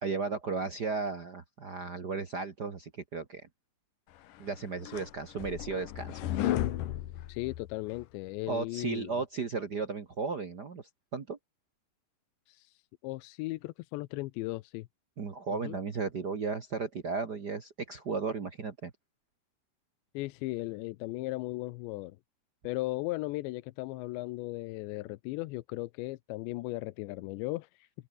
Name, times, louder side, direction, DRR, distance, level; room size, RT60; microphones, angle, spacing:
voice 1, 0.0-3.4 4.4-6.4 8.5-11.4 15.2-18.9, right 4 dB, 85° right, 0.9 m, -35 dB
sound 1, 4.4-8.0, left 13 dB, 65° left, 2.3 m, -34 dB
voice 2, 7.3-9.1 12.5-12.7 13.0-14.9 15.6-15.8 20.1-22.2 22.6-27.7, left 20 dB, 85° left, 3.0 m, -36 dB
omnidirectional pair, 5.0 m